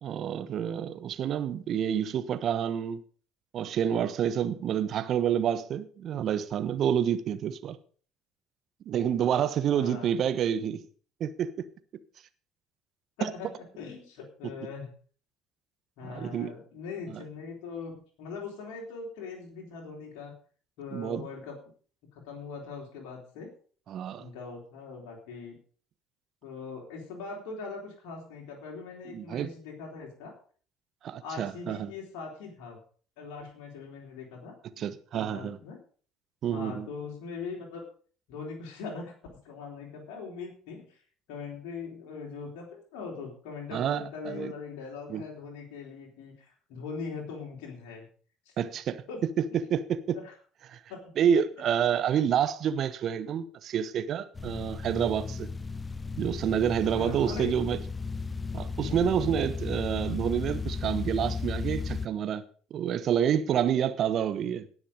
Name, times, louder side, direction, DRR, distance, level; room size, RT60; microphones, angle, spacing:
voice 1, 0.0-3.0 3.5-7.8 8.9-10.9 11.2-11.7 13.2-13.3 16.1-16.5 17.1-17.2 20.9-21.3 23.9-24.3 29.0-29.5 31.0-31.9 34.8-35.6 36.4-36.9 43.7-44.5 45.1-45.2 48.6-49.0 49.7-50.2 50.7-50.8 51.2-55.5 56.2-57.8 58.5-62.4 62.7-64.6, right 9 dB, 50° right, 1.1 m, -28 dB
voice 2, 9.7-10.1 13.2-14.9 16.0-20.3 20.8-21.6 22.1-23.5 24.2-25.6 26.4-30.3 31.2-32.8 33.2-35.8 36.5-37.9 38.3-39.1 39.4-41.0 41.3-48.1 48.5-48.6 49.1-49.2 49.5-49.6 50.1-50.4 50.9-51.0 56.9-57.6 58.7-58.9, left 4 dB, 65° left, 3.6 m, -41 dB
sound 1, 54.3-62.1, left 4 dB, 25° left, 0.6 m, -35 dB
18.0 x 6.4 x 5.2 m
hypercardioid pair, 60°, 0 cm